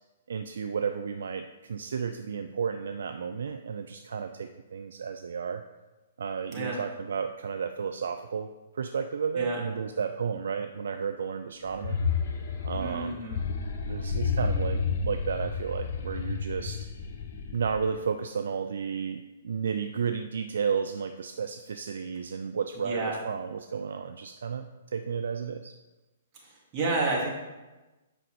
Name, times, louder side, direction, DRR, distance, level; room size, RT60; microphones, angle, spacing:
voice 1, 0.3-5.6 6.2-8.5 8.7-12.0 12.6-13.2 13.9-16.9 17.5-25.8, right 6 dB, 60° right, 8 dB, 0.4 m, -32 dB
sound 1, 11.7-18.0, left 5 dB, 45° left, 0.9 m, -31 dB
voice 2, 12.7-13.4 22.7-23.2 26.3-27.3, right 3 dB, 25° right, -4 dB, 2.5 m, -30 dB
8.0 x 5.4 x 4.8 m, 1.1 s
figure-of-eight pair, 115°, 0 cm